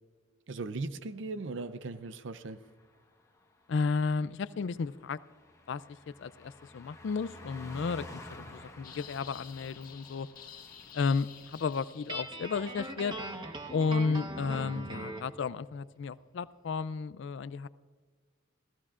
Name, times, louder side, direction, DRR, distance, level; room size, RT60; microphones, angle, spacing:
voice 1, 0.5-2.6, right 3 dB, 60° right, 13 dB, 0.6 m, -38 dB
Car passing by, 1.8-13.8 14.1-14.3, left 1 dB, 15° left, 1.2 m, -52 dB
voice 2, 3.7-5.2 5.7-5.8 6.2-10.3 10.9-13.2 13.7-17.7, left 5 dB, 60° left, 16 dB, 0.4 m, -33 dB
sound 1, 8.8-12.5, left 8 dB, 45° left, 1.5 m, -51 dB
Guitar, 12.1-15.3, right 1 dB, 20° right, 1.0 m, -40 dB
28.0 x 16.0 x 2.5 m, 1.5 s
head